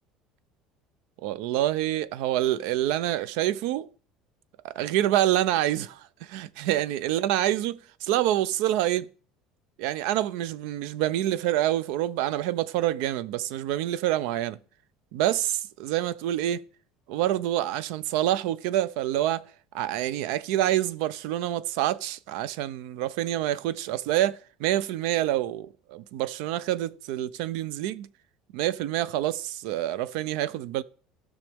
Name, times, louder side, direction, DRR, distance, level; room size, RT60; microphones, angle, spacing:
voice 1, 1.2-3.9 4.6-9.1 9.8-14.6 15.1-16.6 17.1-19.4 19.7-28.1 28.5-30.8, right 13 dB, 65° right, 0.4 m, -27 dB
16.0 x 6.2 x 3.5 m
cardioid pair, 180°, 0 cm